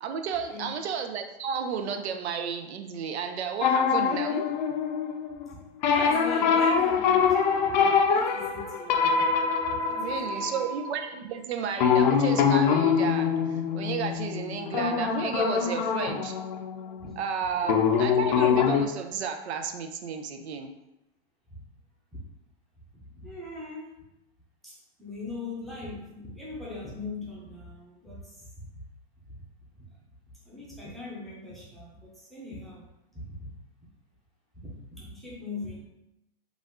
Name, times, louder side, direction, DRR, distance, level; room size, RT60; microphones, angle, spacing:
voice 1, 0.0-4.6 10.0-16.3 17.2-20.7, right 7 dB, 90° right, 5 dB, 0.7 m, -32 dB
sound 1, 3.6-5.5 5.8-11.0 11.8-17.3 17.6-18.9, left 6 dB, 45° left, 0.5 m, -24 dB
voice 2, 5.9-9.0 9.6-10.7 17.0-17.1 18.5-18.6 21.5-21.6 22.1-22.2 23.1-23.9 24.6-28.7 29.3-29.4 30.5-32.8 33.1-33.5 34.5-34.6 34.9-35.8, left 2 dB, ahead, -7 dB, 0.6 m, -40 dB
5.0 x 2.5 x 3.7 m, 0.87 s
supercardioid pair, 165°, 32 cm